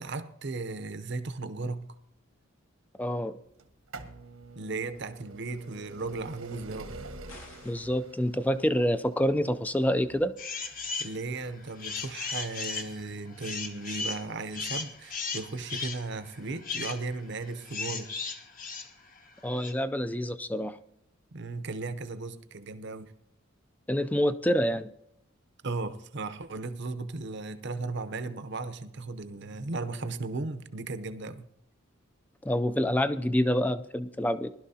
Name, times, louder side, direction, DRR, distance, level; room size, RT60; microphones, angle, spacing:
voice 1, 0.0-1.9 4.5-6.9 11.0-18.1 21.3-23.1 25.6-31.5, right 3 dB, 55° right, 11 dB, 0.7 m, -36 dB
voice 2, 3.0-3.3 7.6-10.3 19.4-20.8 23.9-24.9 32.4-34.5, equal, 10° left, 12 dB, 0.4 m, -27 dB
sound 1, 3.6-15.2 16.1-16.2 17.1-17.2 17.4-17.5, right 3 dB, 85° right, 1.3 m, -48 dB
sound 2, 7.3-8.0, left 2 dB, 70° left, 2.3 m, -50 dB
sound 3, 10.4-11.2 11.6-19.7, left 5 dB, 40° left, 1.1 m, -36 dB
20.0 x 12.0 x 2.8 m, 0.75 s
head